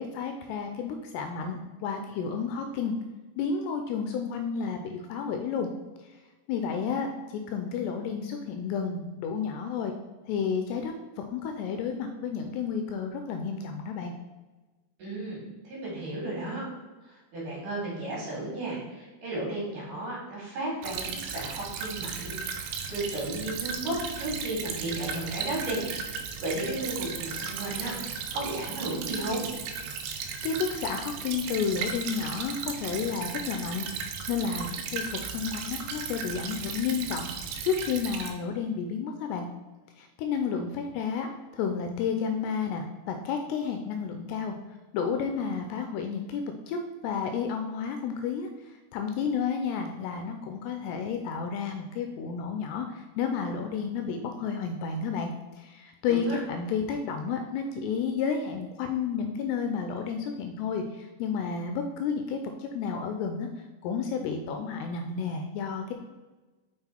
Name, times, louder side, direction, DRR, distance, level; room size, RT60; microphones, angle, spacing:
voice 1, 0.0-2.9 3.4-5.7 6.5-9.9 10.3-14.1 30.4-37.3 37.6-39.5 40.0-44.5 44.9-46.8 47.0-63.5 63.8-65.9, left 6 dB, 80° left, 5 dB, 2.5 m, -31 dB
voice 2, 15.0-16.7 17.3-28.0 28.3-29.4 56.1-56.4, right 1 dB, 50° right, -5 dB, 3.5 m, -34 dB
Stream / Trickle dribble, 20.8-38.3, right 6 dB, 85° right, 2.2 m, -36 dB
6.0 x 5.8 x 4.4 m, 1.2 s
omnidirectional pair, 5.1 m